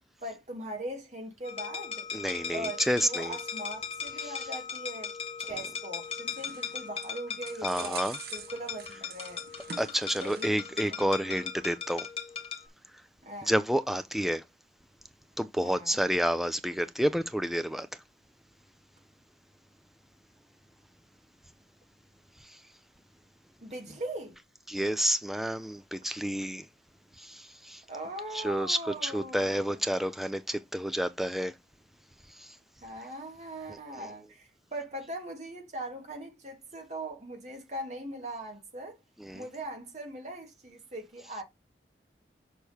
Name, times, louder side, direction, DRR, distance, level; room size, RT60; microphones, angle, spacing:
voice 1, 0.2-2.1 2.5-8.0 8.3-9.4 10.2-10.6 11.0-11.1 13.2-13.5 15.6-16.0 23.6-24.4 27.9-29.8 32.8-39.0 39.3-41.4, right 1 dB, 40° right, 2.8 m, -40 dB
sound 1, 1.4-12.7, left 6 dB, 35° left, 1.1 m, -38 dB
voice 2, 2.1-3.4 4.2-4.3 7.6-8.2 9.8-12.1 13.4-14.4 15.4-18.0 22.4-22.6 24.7-26.7 27.2-27.8 28.3-31.5 32.3-32.6 33.7-34.1 39.2-39.4, equal, ahead, 0.5 m, -30 dB
sound 2, 5.8-10.7 11.0-11.1, right 7 dB, 60° right, 0.8 m, -46 dB
6.4 x 5.8 x 3.4 m
head